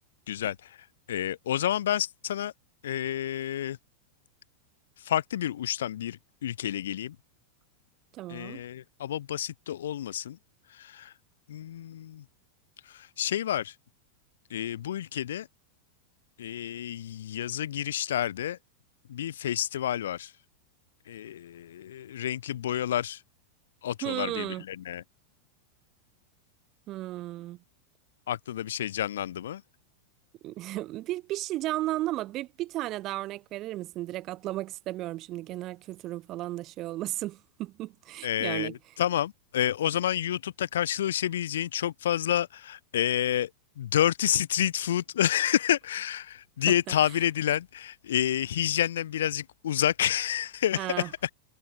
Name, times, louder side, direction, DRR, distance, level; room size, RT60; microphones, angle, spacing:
voice 1, 0.3-0.7 1.1-2.5 2.8-3.8 5.0-7.2 8.3-10.4 10.8-11.1 11.5-12.2 12.9-13.7 14.5-15.5 16.4-18.6 19.1-20.3 21.1-23.2 23.8-25.0 28.3-29.6 38.2-43.5 43.8-51.3, left 11 dB, 60° left, 1.2 m, -29 dB
voice 2, 8.1-8.6 24.0-24.6 26.9-27.6 30.4-38.7 46.7-46.8 50.7-51.1, right 16 dB, 35° right, 2.9 m, -34 dB
figure-of-eight pair, 90°, 0 cm